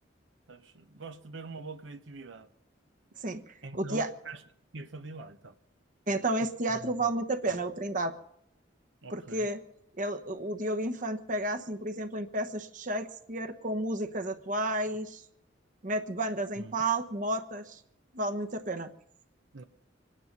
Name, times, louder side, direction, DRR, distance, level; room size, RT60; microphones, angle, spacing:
voice 1, 0.5-2.5 3.6-4.4 4.7-5.6 6.4-7.1 9.0-9.5 16.6-16.7 19.5-19.6, right 3 dB, 80° right, 0.9 m, -44 dB
voice 2, 3.7-4.1 6.1-8.1 9.1-9.6 10.0-15.2 15.8-17.8 18.1-18.9, right 2 dB, 45° right, 1.1 m, -31 dB
26.5 x 10.0 x 5.3 m
head